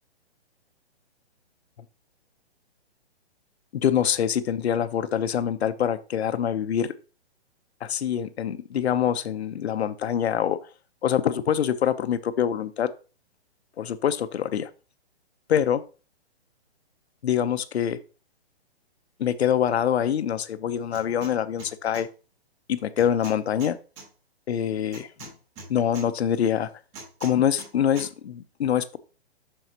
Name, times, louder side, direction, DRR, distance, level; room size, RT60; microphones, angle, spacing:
voice 1, 3.7-6.9 7.8-10.6 11.0-12.9 13.8-14.7 15.5-15.8 17.2-18.0 19.2-22.1 22.7-23.8 24.5-25.3 25.7-26.7 27.2-29.0, left 9 dB, 70° left, 12 dB, 0.8 m, -25 dB
sound 1, 20.9-21.3 21.6-22.0 23.0-24.1 24.9-26.1 26.9-27.7 28.0-28.1, right 3 dB, 20° right, 3.5 m, -42 dB
7.9 x 6.3 x 2.9 m, 0.34 s
hypercardioid pair, 160°, 33 cm